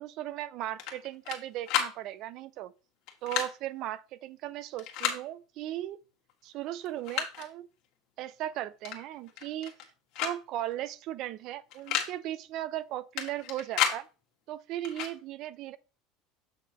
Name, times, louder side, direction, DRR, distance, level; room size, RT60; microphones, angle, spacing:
voice 1, 0.0-2.7 3.2-6.0 6.4-7.7 8.2-9.7 10.2-14.1 14.5-15.8, right 13 dB, 50° right, 0.6 m, -37 dB
sound 1, 0.8-1.4 1.7-1.9 3.1-3.5 4.8-5.2 6.3-6.4 6.8-7.5 8.8-9.0 9.3-9.9 10.2-10.4 10.6-10.7 11.7-12.1 13.2-14.0 14.8-15.1, left 9 dB, 55° left, 1.8 m, -31 dB
8.1 x 6.1 x 3.0 m
supercardioid pair, 145°, 0 cm